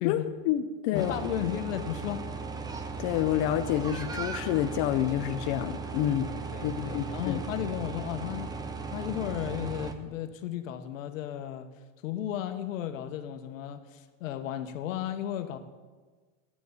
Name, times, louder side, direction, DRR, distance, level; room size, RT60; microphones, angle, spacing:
voice 1, 0.0-1.2 3.0-6.3 6.6-7.4, left 11 dB, 45° left, 8 dB, 0.7 m, -28 dB
voice 2, 0.9-2.3 6.5-8.6 8.9-11.7 12.0-15.6, left 11 dB, 85° left, 9 dB, 1.3 m, -34 dB
sound 1, 0.9-9.9, right 4 dB, 10° right, 0.6 m, -37 dB
10.0 x 8.6 x 8.1 m, 1.4 s
supercardioid pair, 145°, 38 cm